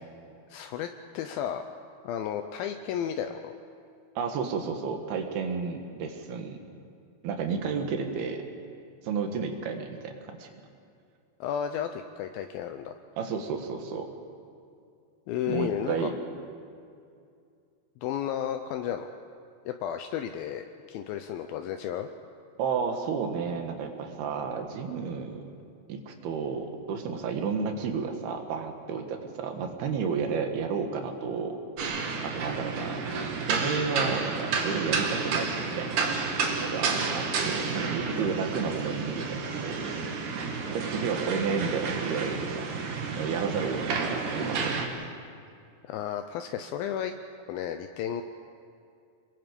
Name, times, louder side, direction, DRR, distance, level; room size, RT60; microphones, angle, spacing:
voice 1, 0.5-0.9 1.1-1.6 2.0-3.5 11.4-13.0 15.3-16.1 18.0-19.1 19.7-22.1 45.8-47.1 47.5-48.2, left 9 dB, 80° left, 7 dB, 2.4 m, -33 dB
voice 2, 4.2-6.6 7.2-8.4 9.0-10.5 13.2-14.1 15.5-16.1 22.6-25.5 25.9-31.6 32.2-33.1 33.5-34.4 34.6-36.3 36.6-39.8 40.7-42.7 43.2-45.2, right 5 dB, 85° right, 5 dB, 3.6 m, -32 dB
sound 1, 31.8-44.9, right 4 dB, 60° right, 3.0 m, -31 dB
27.5 x 22.0 x 5.3 m, 2.4 s
omnidirectional pair, 4.4 m